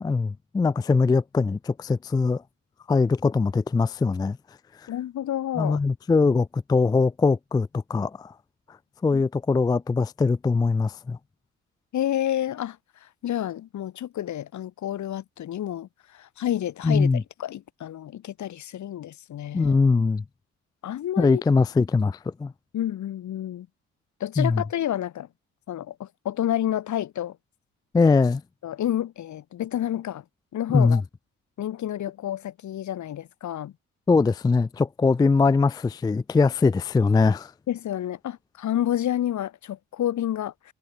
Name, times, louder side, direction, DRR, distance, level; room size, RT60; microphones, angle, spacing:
voice 1, 0.0-2.4 2.9-4.4 5.6-8.3 9.0-11.2 16.8-17.2 19.5-20.2 21.2-22.5 24.4-24.6 27.9-28.4 30.7-31.0 34.1-37.5, left 4 dB, 15° left, 0.3 m, -21 dB
voice 2, 4.9-5.8 11.9-19.8 20.8-21.4 22.7-23.7 24.2-25.3 25.7-27.4 28.6-30.2 30.5-31.0 31.6-33.7 37.7-40.7, left 11 dB, 70° left, 3.5 m, -29 dB
cardioid pair, 90°, 30 cm